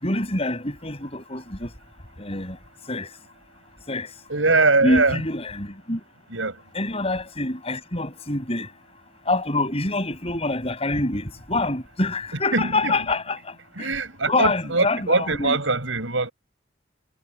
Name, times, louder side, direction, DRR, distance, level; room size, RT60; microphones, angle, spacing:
voice 1, 0.0-1.7 2.2-2.6 2.9-3.1 3.9-4.1 4.8-6.0 6.7-8.7 9.3-13.4 13.8-13.9 14.3-15.6, left 2 dB, 30° left, 6.5 m, -26 dB
voice 2, 4.3-5.2 6.3-6.6 12.5-12.9 13.8-16.3, right 3 dB, 75° right, 6.2 m, -22 dB
head